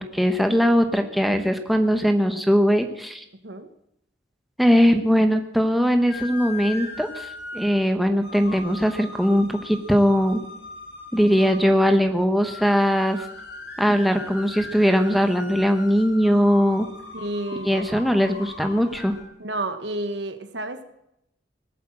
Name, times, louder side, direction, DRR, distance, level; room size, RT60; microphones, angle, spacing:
voice 1, 0.0-3.2 4.6-7.3 7.5-10.4 11.1-13.2 13.8-16.9 17.7-19.1, equal, ahead, 5 dB, 1.0 m, -20 dB
sound 1, 6.1-19.2, left 2 dB, 65° left, 4.4 m, -39 dB
voice 2, 17.1-17.8 19.4-20.9, right 2 dB, 70° right, 9 dB, 1.4 m, -30 dB
18.5 x 8.3 x 7.5 m, 0.80 s
head